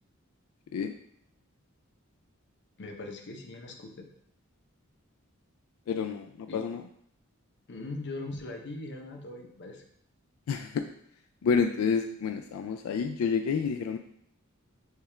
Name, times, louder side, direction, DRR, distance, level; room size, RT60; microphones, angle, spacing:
voice 1, 2.8-4.1 6.5-6.6 7.7-9.8, left 2 dB, 55° left, 3 dB, 0.7 m, -40 dB
voice 2, 5.9-6.8 10.5-10.9 11.4-14.0, left 6 dB, 90° left, 6 dB, 0.3 m, -29 dB
6.5 x 2.4 x 3.2 m, 0.68 s
head